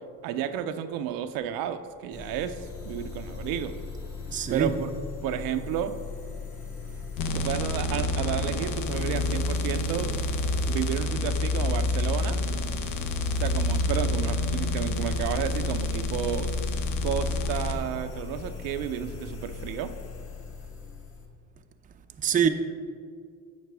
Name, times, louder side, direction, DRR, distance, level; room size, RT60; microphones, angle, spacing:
voice 1, 0.2-3.8 4.5-4.9 5.2-6.0 7.3-10.1 10.7-12.4 13.4-16.5 17.0-19.9, right 9 dB, 75° right, 9 dB, 0.5 m, -32 dB
sound 1, 2.1-21.3, left 5 dB, 40° left, 1.4 m, -39 dB
voice 2, 4.3-4.7 22.2-22.5, right 8 dB, 25° right, 7 dB, 0.4 m, -24 dB
sound 2, 7.2-17.7, left 2 dB, 75° left, 0.7 m, -28 dB
9.1 x 5.7 x 3.4 m, 2.2 s
supercardioid pair, 90°, 35 cm